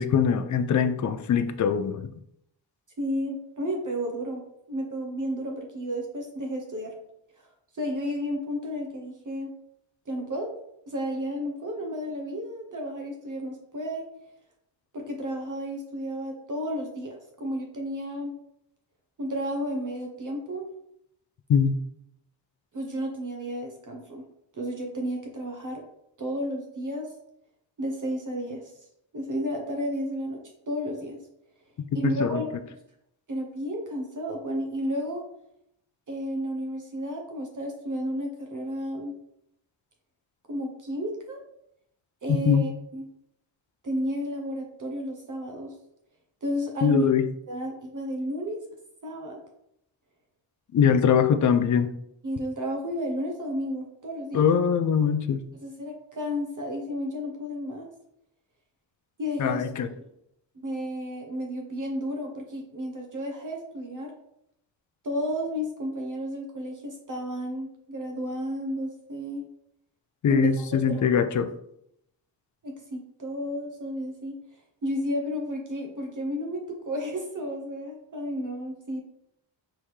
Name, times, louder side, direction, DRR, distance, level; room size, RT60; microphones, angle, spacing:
voice 1, 0.0-2.1 21.5-21.8 32.0-32.4 42.5-42.6 46.8-47.3 50.7-51.9 54.3-55.4 59.4-59.9 70.2-71.5, left 7 dB, 40° left, 11 dB, 0.4 m, -22 dB
voice 2, 3.0-6.9 7.4-7.5 7.7-9.5 10.1-10.5 10.9-14.1 14.9-18.3 19.2-20.7 22.7-24.2 24.5-25.8 26.2-27.1 27.8-28.7 29.1-30.4 30.7-31.2 31.9-32.5 33.3-35.3 36.1-39.2 40.5-41.4 42.2-43.1 43.8-45.7 46.4-47.1 47.5-48.6 49.0-49.4 52.2-54.5 55.6-57.9 59.2-59.6 60.6-64.1 65.0-69.4 70.3-70.5 70.9-71.1 72.6-74.4 74.8-79.0, equal, 40° right, 0 dB, 0.9 m, -32 dB
4.5 x 3.6 x 3.2 m, 0.76 s
cardioid pair, 95°, 46 cm